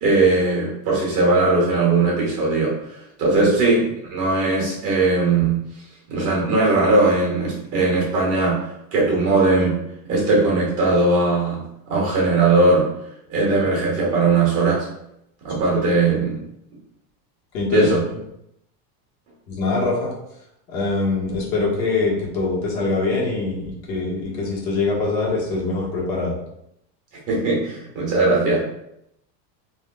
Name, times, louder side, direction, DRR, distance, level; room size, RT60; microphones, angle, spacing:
voice 1, 0.0-5.6 6.1-12.9 13.3-14.9 15.4-16.4 17.7-18.1 27.3-28.6, right 3 dB, 30° right, -3 dB, 1.0 m, -19 dB
voice 2, 17.5-17.9 19.5-20.1 20.7-26.4, left 3 dB, 85° left, -3 dB, 1.4 m, -23 dB
3.4 x 2.6 x 2.3 m, 0.79 s
supercardioid pair, 165°, 50 cm